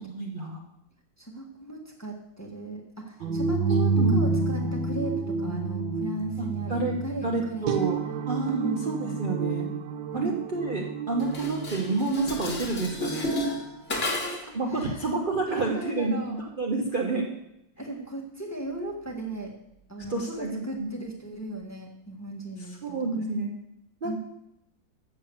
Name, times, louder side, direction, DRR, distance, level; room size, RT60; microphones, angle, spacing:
voice 1, 0.1-0.6 3.9-4.6 6.4-9.7 10.1-13.3 14.5-17.3 20.0-20.9 22.8-23.5 24.0-24.2, right 3 dB, 35° right, -2 dB, 1.0 m, -29 dB
voice 2, 1.2-7.7 8.1-8.2 8.5-9.2 10.1-10.4 13.9-15.1 15.5-16.4 17.8-19.5 19.9-22.8 23.1-23.2 24.0-24.2, right 2 dB, 10° left, -1 dB, 1.3 m, -36 dB
sound 1, 3.2-13.1, right 4 dB, 80° right, 1.6 m, -29 dB
Dishes pots and pans, 11.2-14.6, left 1 dB, 35° left, 1.6 m, -32 dB
7.8 x 7.3 x 6.9 m, 0.84 s
omnidirectional pair, 2.1 m